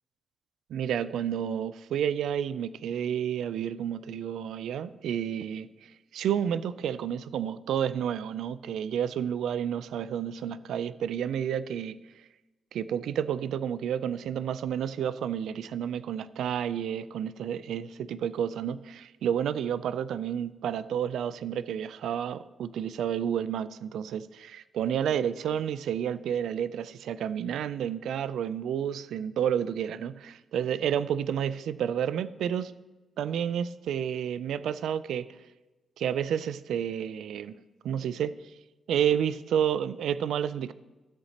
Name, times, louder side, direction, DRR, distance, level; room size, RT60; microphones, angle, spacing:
voice 1, 0.7-12.0 12.7-32.7 33.2-35.3 36.0-37.6 37.8-38.3 38.9-40.7, right 9 dB, 90° right, 0.3 m, -30 dB
12.5 x 8.0 x 2.8 m
cardioid pair, 130°, 0 cm